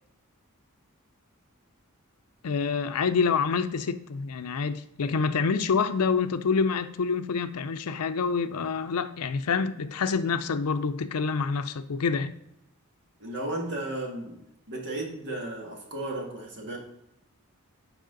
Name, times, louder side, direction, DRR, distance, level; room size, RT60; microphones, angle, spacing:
voice 1, 2.4-12.3, left 5 dB, 85° left, 0.5 m, -27 dB
voice 2, 13.2-14.4 14.7-16.8, right 1 dB, 55° right, 1.9 m, -34 dB
7.7 x 4.9 x 3.9 m
head